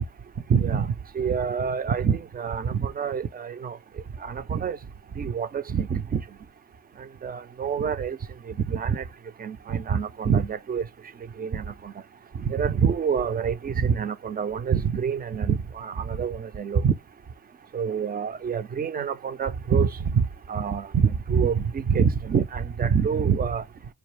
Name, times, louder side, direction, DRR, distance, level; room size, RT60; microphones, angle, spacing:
voice 1, 0.5-0.9 1.2-3.8 4.2-4.8 5.2-6.2 7.2-8.2 8.7-9.0 9.4-10.8 11.4-11.6 12.5-16.9 17.7-23.6, right 6 dB, 30° right, 0.5 m, -26 dB
4.4 x 2.4 x 3.2 m
cardioid pair, 90°, 30 cm